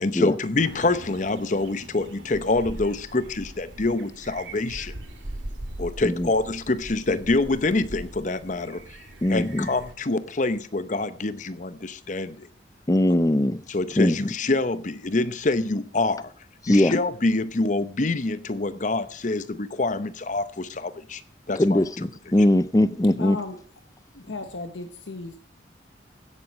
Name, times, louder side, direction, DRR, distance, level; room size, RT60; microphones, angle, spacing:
voice 1, 0.0-4.9 5.8-8.8 9.3-12.5 13.7-16.3 16.7-21.2 21.5-21.8, left 2 dB, 40° left, 0.8 m, -26 dB
sound 1, 0.5-9.9, right 1 dB, 90° right, 2.2 m, -41 dB
voice 2, 9.2-9.7 12.9-13.6 14.0-14.2 16.6-16.9 21.6-23.4, left 1 dB, 20° left, 0.5 m, -20 dB
voice 3, 23.2-23.6 24.1-25.4, left 3 dB, 85° left, 1.0 m, -35 dB
16.0 x 7.9 x 5.1 m
head